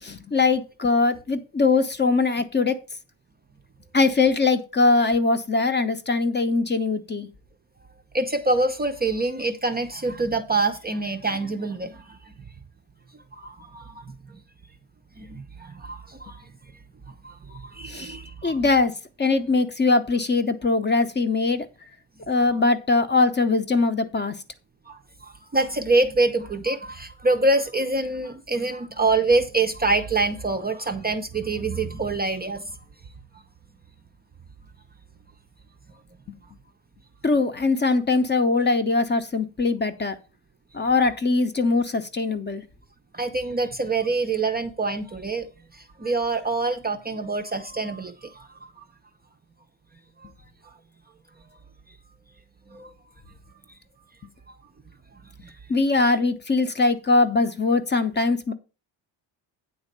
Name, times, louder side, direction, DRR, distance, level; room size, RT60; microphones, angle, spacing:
voice 1, 0.0-2.8 3.9-7.3 17.9-18.1 18.4-18.9 19.2-21.7 22.3-24.4 37.2-40.2 40.7-42.6 55.7-58.5, left 3 dB, 25° left, 0.6 m, -21 dB
voice 2, 8.1-12.3 13.3-14.1 15.2-16.5 17.1-18.6 22.5-22.6 24.9-32.8 43.1-45.5 45.7-48.5 48.8-48.9 52.7-52.9 55.4-55.5, right 3 dB, 20° right, 0.5 m, -26 dB
9.1 x 4.0 x 6.6 m
cardioid pair, 160°, 46 cm